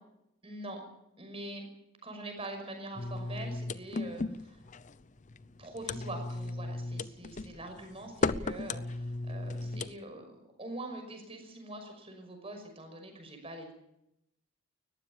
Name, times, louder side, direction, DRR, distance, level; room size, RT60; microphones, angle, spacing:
voice 1, 0.4-0.8 1.2-1.7 2.0-4.6 5.6-13.7, right 1 dB, 30° right, 5 dB, 5.8 m, -44 dB
sound 1, 3.0-9.9, left 3 dB, 40° left, 0.7 m, -36 dB
20.0 x 15.0 x 8.8 m, 0.82 s
head